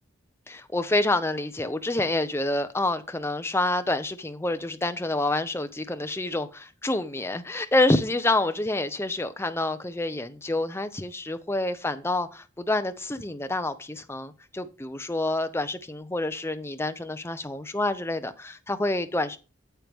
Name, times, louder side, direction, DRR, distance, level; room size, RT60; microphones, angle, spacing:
voice 1, 0.5-19.4, left 2 dB, 15° left, 0.7 m, -27 dB
9.0 x 7.6 x 3.6 m
head